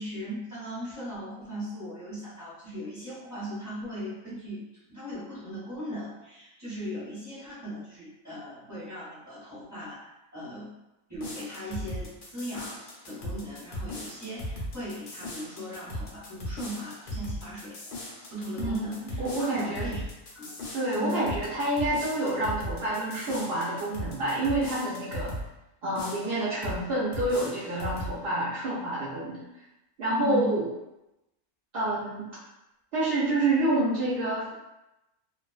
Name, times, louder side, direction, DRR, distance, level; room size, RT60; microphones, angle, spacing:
voice 1, 0.0-4.6 4.9-10.7 11.1-12.8 13.1-18.0 18.3-20.0 20.3-21.3 30.2-30.5, equal, 15° right, -12 dB, 0.7 m, -38 dB
sound 1, 11.1-25.5 25.9-26.8 27.1-28.2, equal, 80° left, 0.4 m, -38 dB
voice 2, 19.2-19.9 20.7-25.3 25.8-29.4 30.0-30.7 31.7-32.3 32.9-34.5, right 1 dB, 65° right, -9 dB, 0.6 m, -28 dB
2.3 x 2.2 x 2.3 m, 0.94 s
omnidirectional pair, 1.5 m